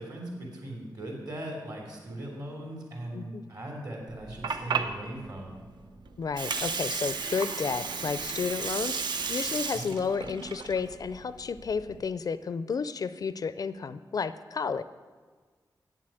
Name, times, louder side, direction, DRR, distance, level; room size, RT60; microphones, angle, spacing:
voice 1, 0.0-5.6 9.7-9.9, right 1 dB, 55° right, 0 dB, 3.0 m, -39 dB
Water, 4.1-12.0, right 5 dB, 75° right, 0.7 m, -34 dB
voice 2, 6.2-14.8, left 5 dB, 55° left, 14 dB, 0.4 m, -32 dB
8.3 x 7.6 x 8.8 m, 1.5 s
wide cardioid pair, 145°, 8 cm